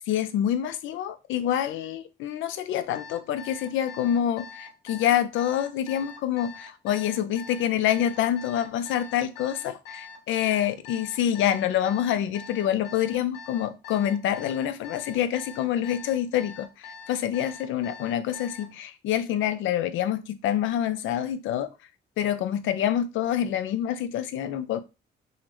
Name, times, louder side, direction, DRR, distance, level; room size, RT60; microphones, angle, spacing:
voice 1, 0.1-21.7 22.2-24.8, left 10 dB, 80° left, 0.4 m, -27 dB
Alarm, 2.9-18.7, left 5 dB, 55° left, 1.4 m, -43 dB
3.7 x 2.0 x 2.9 m
cardioid pair, 90°, 20 cm